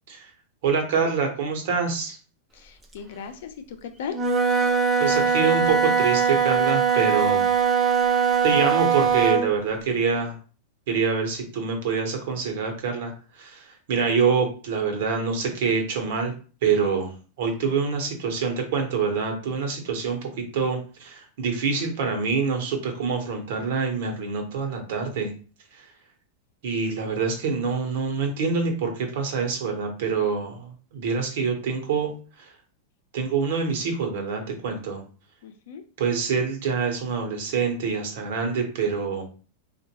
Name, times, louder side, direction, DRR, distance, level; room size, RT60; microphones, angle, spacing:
voice 1, 0.6-2.2 5.0-7.5 8.4-10.4 10.9-16.3 16.6-25.3 25.7-25.9 26.6-32.1 32.4-32.5 33.1-35.0 36.0-39.3, right 5 dB, 55° right, 3 dB, 1.1 m, -26 dB
voice 2, 2.5-4.2 35.4-35.8, left 7 dB, 60° left, 7 dB, 0.6 m, -37 dB
Wind instrument woodwind instrument, 4.1-9.5, right 6 dB, 10° right, 0.5 m, -21 dB
3.7 x 2.5 x 2.9 m, 0.37 s
supercardioid pair, 170°, 0 cm